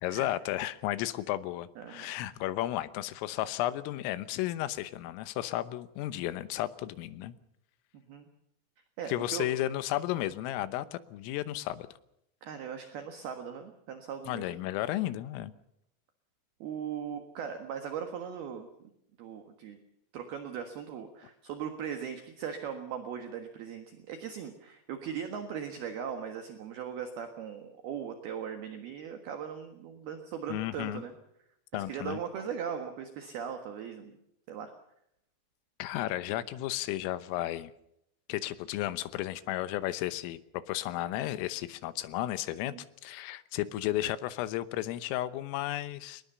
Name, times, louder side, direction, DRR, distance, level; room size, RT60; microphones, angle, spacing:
voice 1, 0.0-7.3 9.1-11.9 14.3-15.5 30.5-31.0 31.7-32.2 35.8-37.7 38.3-40.4 40.7-42.7 43.0-46.2, left 14 dB, 90° left, 14 dB, 3.6 m, -33 dB
voice 2, 1.8-2.1 8.1-8.3 9.0-9.5 12.4-14.5 16.6-18.7 19.2-19.8 20.1-31.1 31.7-34.1 34.5-34.7 42.7-42.8, right 7 dB, 60° right, 6 dB, 3.0 m, -39 dB
23.0 x 20.5 x 6.8 m, 0.77 s
omnidirectional pair, 5.8 m